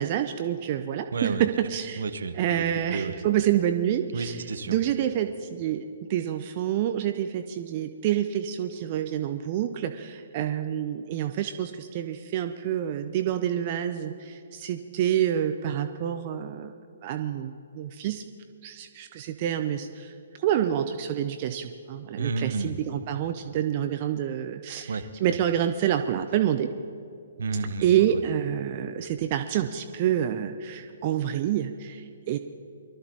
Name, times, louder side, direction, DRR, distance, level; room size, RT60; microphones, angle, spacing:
voice 1, 0.0-2.0 2.4-4.4 4.7-16.7 17.0-18.2 18.6-26.7 27.8-32.4, right 10 dB, 40° right, 8 dB, 0.6 m, -27 dB
voice 2, 1.1-1.4 2.0-2.6 2.9-3.2 4.1-4.8 22.2-22.8 24.9-25.1 27.4-28.1, right 4 dB, 65° right, 10 dB, 0.9 m, -31 dB
23.5 x 13.0 x 2.9 m, 2.6 s
figure-of-eight pair, 130°, 0 cm